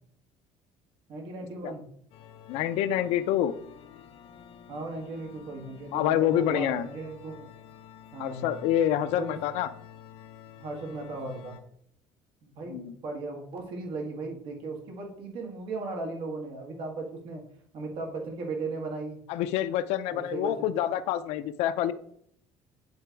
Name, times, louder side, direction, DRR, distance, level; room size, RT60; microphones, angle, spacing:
voice 1, 1.1-1.9 4.7-7.5 8.1-8.6 9.1-9.4 10.6-11.6 12.4-17.4 17.7-19.2 20.1-20.5, right 3 dB, 50° right, 1 dB, 1.7 m, -36 dB
sound 1, 2.1-11.6, left 9 dB, 55° left, 0.9 m, -50 dB
voice 2, 2.5-3.5 5.9-6.9 8.2-9.7 12.7-13.0 19.3-21.9, left 11 dB, 75° left, 12 dB, 0.5 m, -27 dB
8.7 x 3.3 x 4.6 m, 0.68 s
cardioid pair, 170°, 11 cm